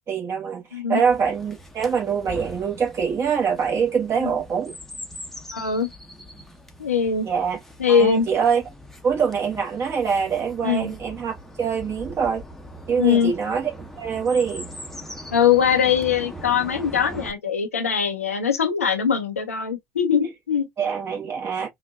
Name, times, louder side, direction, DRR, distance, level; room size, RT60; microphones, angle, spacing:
voice 1, 0.1-4.8 7.2-7.6 7.9-8.6 9.0-12.4 12.9-13.7 14.0-14.7 20.8-21.7, right 6 dB, 35° right, 1.6 m, -24 dB
Chirp tweet, 1.0-17.3, equal, 5° left, 0.9 m, -41 dB
voice 2, 5.5-5.9 6.8-7.3 7.8-8.3 10.6-10.9 13.0-13.3 15.3-20.7, left 7 dB, 85° left, 0.7 m, -21 dB
3.8 x 2.6 x 2.4 m
figure-of-eight pair, 60°, 7 cm